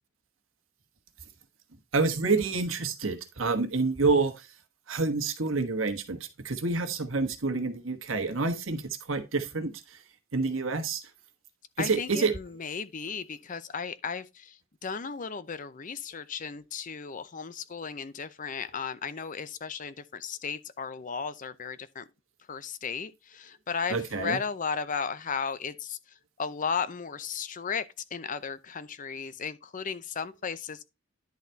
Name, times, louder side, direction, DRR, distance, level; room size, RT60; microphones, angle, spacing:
voice 1, 1.9-4.5 4.9-6.2 6.4-10.0 10.3-11.0 11.8-12.3 23.9-24.4, right 3 dB, 75° right, 1.3 m, -28 dB
voice 2, 11.8-22.1 22.5-26.0 26.4-27.8 28.1-30.8, left 6 dB, 40° left, 0.6 m, -35 dB
10.5 x 4.1 x 4.5 m
head